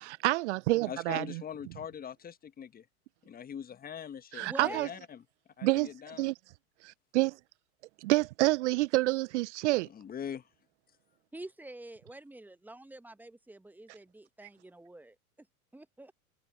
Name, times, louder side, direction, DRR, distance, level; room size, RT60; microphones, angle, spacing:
voice 1, 0.0-1.4 4.3-4.9 5.6-5.9 6.2-6.3 6.8-7.4 8.0-9.9, right 20 dB, 55° right, 0.5 m, -28 dB
voice 2, 0.8-2.9 3.2-5.2 5.6-6.3 9.9-10.5, left 8 dB, 20° left, 1.2 m, -42 dB
voice 3, 4.4-4.9 11.3-15.2 15.7-16.1, right 2 dB, 5° right, 1.1 m, -46 dB
hypercardioid pair, 95°, 44 cm